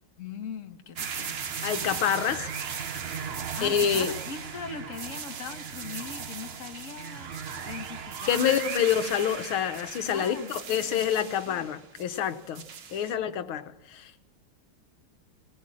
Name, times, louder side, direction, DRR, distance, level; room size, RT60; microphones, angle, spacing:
voice 1, 0.2-1.4 3.5-8.6 10.1-11.1 13.0-13.4, left 6 dB, 40° left, 1.4 m, -41 dB
sound 1, 1.0-13.1, right 6 dB, 70° right, 0.5 m, -37 dB
voice 2, 1.6-2.5 3.6-4.1 8.3-12.6 12.9-14.2, left 9 dB, 80° left, 1.8 m, -27 dB
20.5 x 17.5 x 7.6 m
omnidirectional pair, 2.3 m